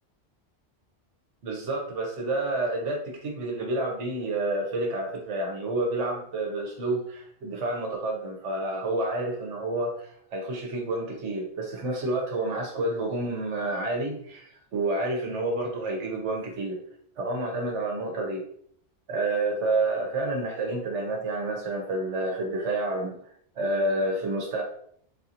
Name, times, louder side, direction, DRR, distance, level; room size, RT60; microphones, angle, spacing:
voice 1, 1.4-16.8 17.2-18.5 19.1-23.2 23.6-24.6, right 2 dB, 85° right, 1 dB, 1.2 m, -29 dB
4.1 x 2.8 x 2.5 m, 0.64 s
omnidirectional pair, 1.2 m